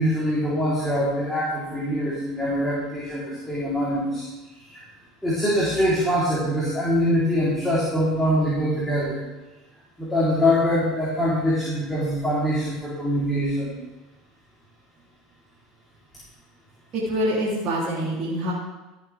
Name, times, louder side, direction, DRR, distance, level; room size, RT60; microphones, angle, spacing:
voice 1, 0.0-4.3 4.6-4.8 5.2-9.2 10.0-13.7, equal, 5° left, -8 dB, 3.6 m, -23 dB
voice 2, 16.9-18.5, equal, 50° right, -6 dB, 3.1 m, -25 dB
14.0 x 7.5 x 3.5 m, 1.1 s
hypercardioid pair, 85°, 0 cm